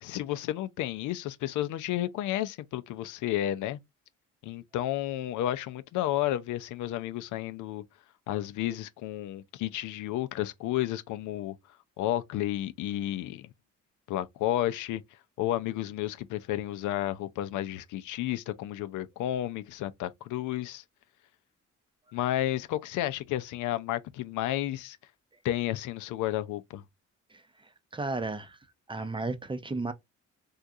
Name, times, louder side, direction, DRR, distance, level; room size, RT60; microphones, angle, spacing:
voice 1, 0.0-3.8 4.4-7.8 8.3-11.5 12.0-13.5 14.1-15.0 15.4-20.8 22.1-25.0 25.4-26.8, left 13 dB, 85° left, 0.5 m, -32 dB
voice 2, 27.9-28.6 28.9-29.9, right 3 dB, 15° right, 0.6 m, -33 dB
3.6 x 2.4 x 2.6 m
cardioid pair, 90°, 30 cm